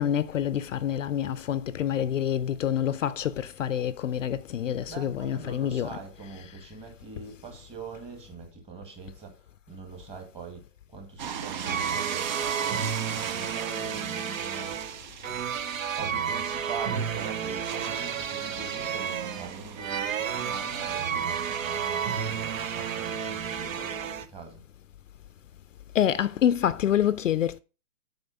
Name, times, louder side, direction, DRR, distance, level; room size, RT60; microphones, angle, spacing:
voice 1, 0.0-6.4 25.9-27.6, left 10 dB, 60° left, 0.6 m, -27 dB
voice 2, 4.9-14.9 15.9-24.6, right 5 dB, 15° right, 1.7 m, -43 dB
sound 1, 11.2-23.7, right 8 dB, 35° right, 0.6 m, -40 dB
sound 2, 11.7-24.3, right 7 dB, 60° right, 1.0 m, -31 dB
8.0 x 5.0 x 4.9 m
hypercardioid pair, 140°, 44 cm